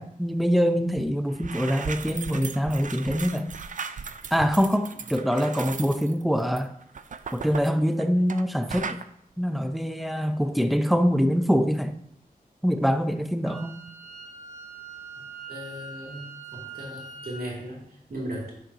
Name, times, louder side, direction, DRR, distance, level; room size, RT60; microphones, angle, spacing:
voice 1, 0.0-3.5 4.3-6.7 7.3-9.0 9.4-11.9 12.6-13.8, equal, ahead, 0.6 m, -24 dB
sound 1, 1.3-8.4 8.7-9.0, right 6 dB, 55° right, 0.4 m, -37 dB
Wind instrument woodwind instrument, 13.4-17.4, right 4 dB, 55° left, 1.4 m, -42 dB
voice 2, 15.5-16.2 16.5-18.5, right 1 dB, 75° right, 2.7 m, -37 dB
10.5 x 6.6 x 2.9 m
wide cardioid pair, 110°, 16 cm